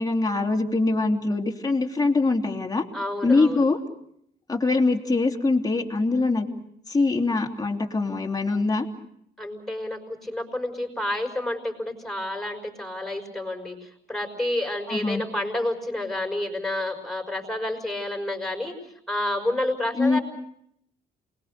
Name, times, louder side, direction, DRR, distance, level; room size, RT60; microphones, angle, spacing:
voice 1, 0.0-2.8 3.2-3.8 4.5-6.5 6.9-8.9 14.9-15.2 19.9-20.2, left 3 dB, 20° left, 2 dB, 3.2 m, -23 dB
voice 2, 2.9-3.6 9.4-18.8 19.1-20.2, left 1 dB, ahead, 2 dB, 5.7 m, -29 dB
28.0 x 21.0 x 6.7 m, 0.73 s
cardioid pair, 90°, 20 cm